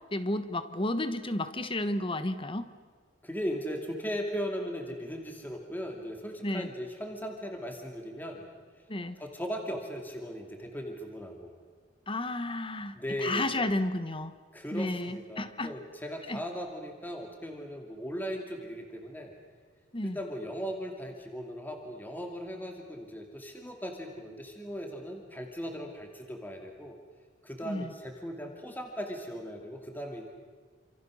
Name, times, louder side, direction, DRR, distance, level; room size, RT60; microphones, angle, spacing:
voice 1, 0.1-2.7 6.4-6.7 8.9-9.1 12.1-13.0 13.2-14.3 14.7-15.7 16.3-16.4 19.9-20.2 27.6-27.9, left 1 dB, 30° left, 11 dB, 1.3 m, -32 dB
voice 2, 3.2-8.5 9.2-11.5 12.9-13.8 14.5-19.3 20.0-27.0 27.4-30.3, equal, 10° left, 2 dB, 2.6 m, -38 dB
28.0 x 27.5 x 6.4 m, 1.5 s
head